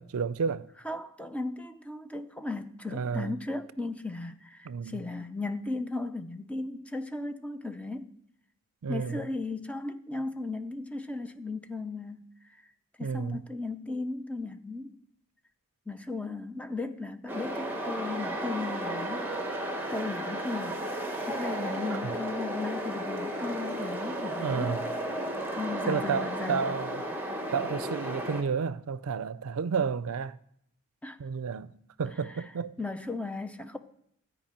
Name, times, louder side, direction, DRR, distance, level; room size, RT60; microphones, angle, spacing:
voice 1, 0.0-0.7 2.9-3.3 4.6-5.0 8.8-9.2 13.0-13.4 21.9-22.0 24.4-24.9 25.9-27.0 27.5-30.4 31.2-32.7, right 6 dB, 75° right, 0.4 m, -31 dB
voice 2, 0.8-8.1 8.9-12.3 13.0-14.9 15.9-19.3 19.9-20.8 21.3-24.7 25.6-26.7 31.0-31.2 32.8-33.8, left 3 dB, 5° left, 0.6 m, -36 dB
sound 1, 17.3-28.4, right 1 dB, 10° right, 1.3 m, -34 dB
13.5 x 5.0 x 8.7 m
head